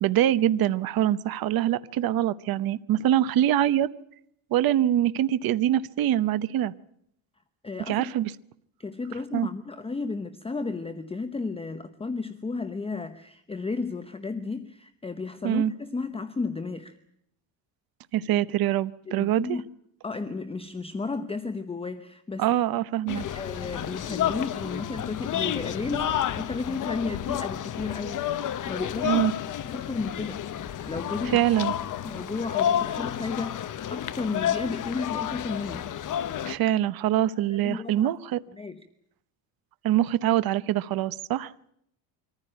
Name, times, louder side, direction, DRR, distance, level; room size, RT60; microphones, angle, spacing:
voice 1, 0.0-3.9 4.5-6.7 7.9-8.3 9.3-9.5 15.4-15.7 18.1-19.6 22.4-23.2 29.0-29.3 31.3-31.7 36.4-38.4 39.8-41.5, right 12 dB, 50° right, 15 dB, 0.9 m, -24 dB
voice 2, 7.6-8.1 8.8-17.0 19.1-19.7 20.0-22.5 23.0-29.2 29.6-30.4 30.8-31.4 32.0-35.8 37.5-38.1 38.5-38.8, left 4 dB, 10° left, 9 dB, 0.9 m, -33 dB
sound 1, 23.1-36.6, left 10 dB, 40° left, 1.0 m, -30 dB
24.5 x 15.0 x 10.0 m, 0.74 s
cardioid pair, 140°, 46 cm